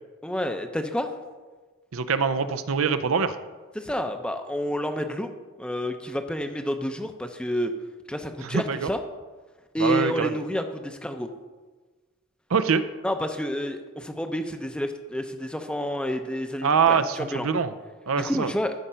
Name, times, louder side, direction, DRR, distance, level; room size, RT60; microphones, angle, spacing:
voice 1, 0.2-1.1 3.8-5.3 5.6-7.7 8.1-9.0 9.7-11.3 13.0-17.5 18.2-18.7, equal, 5° left, 6 dB, 0.6 m, -29 dB
voice 2, 1.9-3.4 8.4-8.9 9.8-10.3 12.5-12.8 16.6-17.7 18.1-18.5, right 6 dB, 85° right, 11 dB, 0.6 m, -24 dB
13.0 x 5.1 x 5.6 m, 1.3 s
head